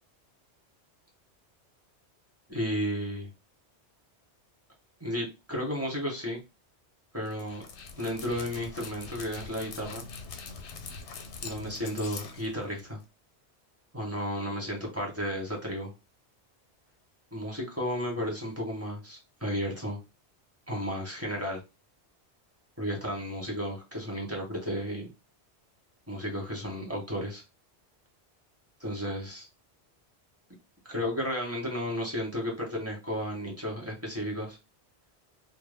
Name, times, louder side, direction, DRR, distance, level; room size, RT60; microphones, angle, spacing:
voice 1, 2.5-3.3 5.0-6.4 7.1-7.6 8.0-10.0 11.4-13.0 13.9-15.9 17.3-20.0 20.7-21.6 22.8-25.1 26.1-27.4 28.8-29.5 30.8-34.6, equal, 15° right, 0 dB, 0.8 m, -33 dB
Dog, 7.3-13.0, left 5 dB, 90° left, 0.9 m, -43 dB
2.1 x 2.0 x 3.3 m, 0.25 s
omnidirectional pair, 1.1 m